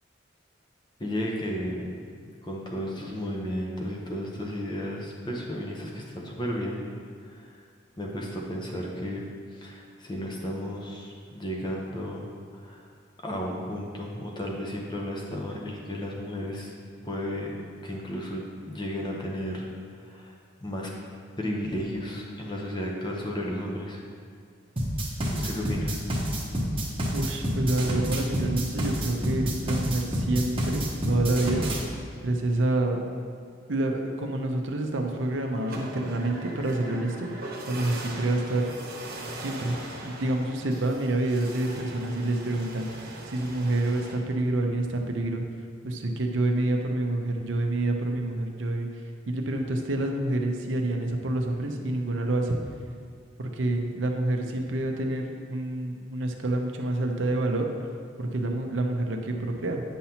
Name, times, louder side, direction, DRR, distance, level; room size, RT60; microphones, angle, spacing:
voice 1, 1.0-1.9 2.4-6.8 7.2-7.5 8.0-9.2 9.5-12.3 12.5-12.9 13.2-16.7 17.0-17.5 17.8-19.7 20.0-20.3 20.6-20.9 21.4-24.0 25.3-26.0, equal, 25° left, -1 dB, 0.8 m, -33 dB
sound 1, 24.8-31.8, equal, 30° right, 0.9 m, -28 dB
voice 2, 27.1-31.7 32.2-33.0 33.7-38.7 39.4-39.8 40.0-45.4 45.8-48.9 49.3-52.6 53.4-57.7 58.2-59.8, right 2 dB, 70° right, 3 dB, 0.7 m, -28 dB
sound 2, 35.0-44.2, right 1 dB, 50° right, 1.1 m, -40 dB
9.1 x 5.7 x 2.9 m, 2.1 s
head